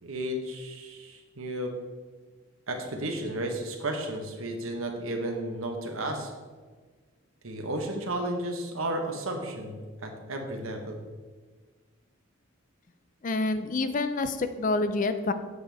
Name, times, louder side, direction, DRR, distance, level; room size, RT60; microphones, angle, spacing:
voice 1, 0.0-1.7 2.7-6.3 7.4-11.0, right 1 dB, 80° right, 3 dB, 1.2 m, -33 dB
voice 2, 13.2-15.3, left 3 dB, 40° left, 10 dB, 0.4 m, -27 dB
8.1 x 7.2 x 3.5 m, 1.4 s
head